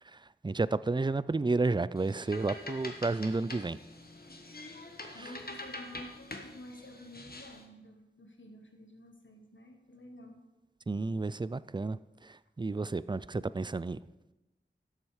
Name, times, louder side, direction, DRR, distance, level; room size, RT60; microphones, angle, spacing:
voice 1, 0.0-3.8 5.0-5.4 10.9-14.0, right 3 dB, 25° right, 18 dB, 0.4 m, -32 dB
sound 1, 2.0-7.7, left 2 dB, 50° left, 1.3 m, -45 dB
voice 2, 5.1-10.4, left 1 dB, 80° left, 4 dB, 1.5 m, -50 dB
12.5 x 7.8 x 4.9 m, 1.0 s
wide cardioid pair, 50°, 20 cm